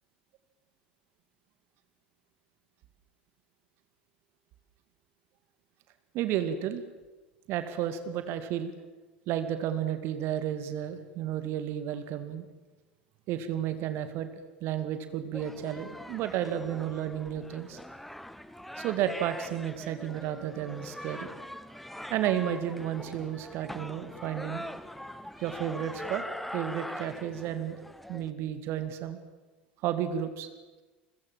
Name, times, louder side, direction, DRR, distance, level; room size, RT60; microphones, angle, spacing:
voice 1, 6.1-6.8 7.5-8.7 9.3-12.5 13.3-14.3 14.6-17.8 18.8-21.3 22.1-24.7 25.4-26.2 26.5-27.8 28.1-29.2 29.8-30.5, right 10 dB, 45° right, 10 dB, 2.1 m, -32 dB
sound 1, 15.3-28.3, equal, 5° left, 1.5 m, -42 dB
29.5 x 23.0 x 7.6 m, 1.2 s
figure-of-eight pair, 75°, 6 cm